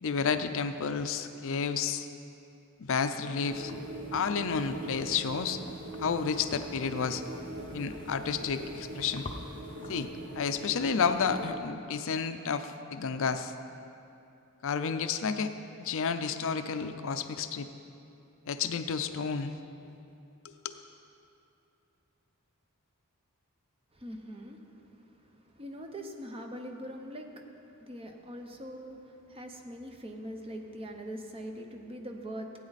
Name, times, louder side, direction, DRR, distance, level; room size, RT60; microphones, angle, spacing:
voice 1, 0.0-2.1 2.8-3.7 4.1-5.6 6.0-7.2 7.7-9.3 9.9-10.1 10.3-13.5 14.6-15.5 15.8-17.7 18.5-19.5 20.6-20.8, left 6 dB, 65° left, 9 dB, 0.5 m, -31 dB
sound 1, 3.4-11.6, right 1 dB, 55° right, 1.1 m, -42 dB
sound 2, 3.5-10.1, left 2 dB, 25° left, 0.7 m, -48 dB
voice 2, 23.9-32.5, equal, 25° right, 3 dB, 0.9 m, -43 dB
16.0 x 9.0 x 4.1 m, 2.7 s
head